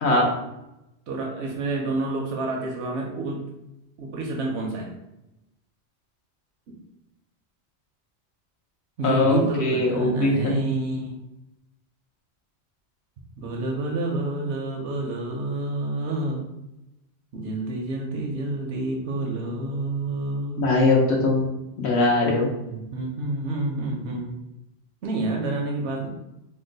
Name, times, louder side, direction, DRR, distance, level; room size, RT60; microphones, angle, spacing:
voice 1, 1.1-3.4 4.0-5.0 6.7-6.8 9.0-11.2 13.4-16.5 17.3-20.7 22.7-24.3 25.0-26.1, right 2 dB, 80° right, 0 dB, 0.9 m, -28 dB
voice 2, 9.0-10.5 20.6-21.5 21.8-22.5, left 2 dB, 75° left, -1 dB, 1.0 m, -21 dB
2.9 x 2.2 x 3.8 m, 0.92 s
omnidirectional pair, 1.1 m